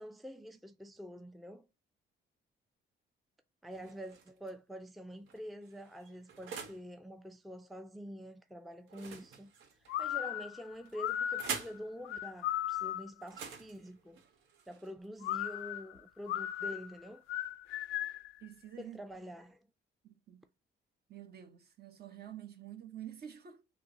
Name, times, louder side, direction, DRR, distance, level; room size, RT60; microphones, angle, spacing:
voice 1, 0.0-1.7 3.6-9.5 10.0-14.2 14.7-17.2 18.8-19.6, equal, ahead, 0.4 m, -46 dB
sound 1, 3.7-4.5 5.2-6.9 8.9-10.0 10.9-11.9 13.2-15.2, right 6 dB, 90° right, 0.8 m, -45 dB
sound 2, 9.9-13.2 15.2-18.3, left 12 dB, 85° left, 0.4 m, -37 dB
voice 2, 18.4-19.0 20.0-20.5 21.1-23.6, right 10 dB, 55° right, 0.9 m, -48 dB
5.5 x 2.1 x 2.6 m
cardioid pair, 90°, 20 cm